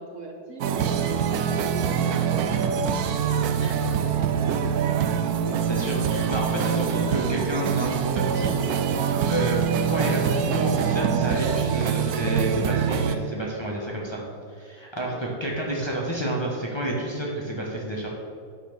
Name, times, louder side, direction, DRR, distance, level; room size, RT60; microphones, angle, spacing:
voice 1, 0.0-5.7 15.0-15.2, right 2 dB, 55° right, 1 dB, 1.2 m, -40 dB
sound 1, 0.6-13.2, right 7 dB, 75° right, 1.1 m, -24 dB
voice 2, 5.7-8.5 8.8-9.6 9.9-14.2 14.5-18.1, right 1 dB, 20° left, -3 dB, 1.2 m, -30 dB
9.1 x 4.3 x 6.8 m, 2.2 s
omnidirectional pair, 1.7 m